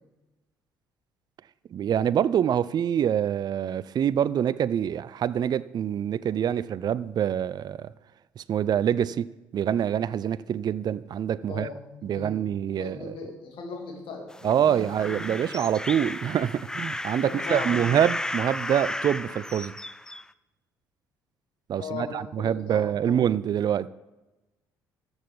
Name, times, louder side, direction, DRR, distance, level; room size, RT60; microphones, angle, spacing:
voice 1, 1.7-7.9 8.4-11.7 12.0-13.2 14.4-19.7 21.7-23.9, right 9 dB, 45° right, 0.4 m, -26 dB
voice 2, 11.5-12.4 12.7-15.5 17.2-18.0 21.8-23.2, left 4 dB, 60° left, 2.8 m, -38 dB
sound 1, 14.3-20.2, left 1 dB, 5° left, 0.5 m, -34 dB
14.0 x 8.0 x 5.4 m
hypercardioid pair, 50°, 10 cm